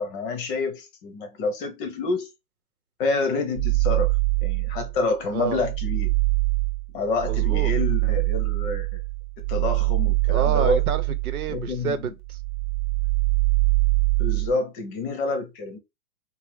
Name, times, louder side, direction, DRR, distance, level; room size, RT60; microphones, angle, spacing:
voice 1, 0.0-2.3 3.0-4.1 4.4-6.1 6.9-9.0 9.5-10.8 11.5-12.0 14.2-15.8, left 3 dB, 35° left, 1.0 m, -28 dB
sound 1, 3.6-5.0 5.4-11.9 12.2-14.5, right 28 dB, 35° right, 0.7 m, -24 dB
voice 2, 5.3-5.6 7.3-7.7 10.3-12.4, right 7 dB, 75° right, 0.8 m, -28 dB
4.7 x 2.1 x 3.4 m
hypercardioid pair, 130°, 45 cm